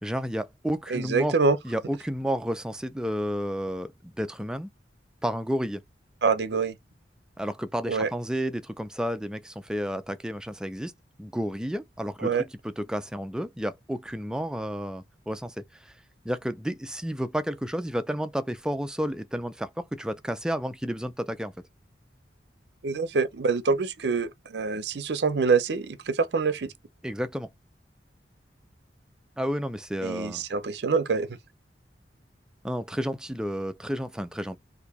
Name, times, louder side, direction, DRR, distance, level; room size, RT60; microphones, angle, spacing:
voice 1, 0.0-1.3 1.6-4.7 5.2-5.8 7.4-10.9 11.2-15.9 16.2-21.5 27.0-27.5 29.4-30.4 32.6-34.6, equal, 5° right, 0.3 m, -31 dB
voice 2, 0.9-1.6 6.2-6.8 7.9-8.1 12.2-12.4 22.8-26.7 30.0-31.4, right 4 dB, 65° right, 0.5 m, -25 dB
2.9 x 2.5 x 3.5 m
head